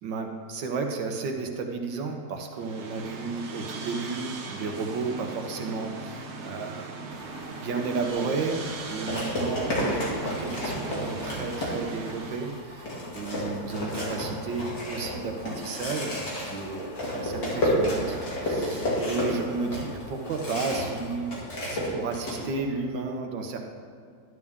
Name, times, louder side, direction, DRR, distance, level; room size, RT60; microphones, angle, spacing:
voice 1, 0.0-21.4 21.7-23.6, right 4 dB, 75° right, 3 dB, 1.8 m, -33 dB
sound 1, 2.5-12.7, right 4 dB, 45° right, 1.0 m, -39 dB
sound 2, 7.1-21.2, left 2 dB, 45° left, 2.1 m, -48 dB
sound 3, 8.1-8.3 9.1-12.1 12.5-12.6 12.9-21.0 21.3-22.4, left 1 dB, 70° left, 3.2 m, -30 dB
12.5 x 11.0 x 3.6 m, 2.2 s
omnidirectional pair, 2.0 m